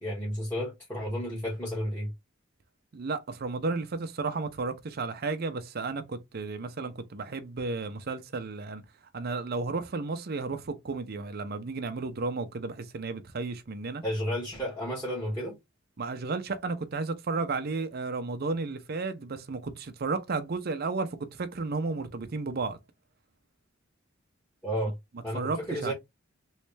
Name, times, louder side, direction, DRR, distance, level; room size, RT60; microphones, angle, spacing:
voice 1, 0.0-2.1 14.0-15.5 24.6-25.0 25.2-25.9, equal, 10° left, 1.5 m, -32 dB
voice 2, 2.9-8.8 9.1-14.0 16.0-22.8 25.3-25.9, right 3 dB, 50° right, 0.6 m, -33 dB
3.2 x 3.2 x 3.2 m
head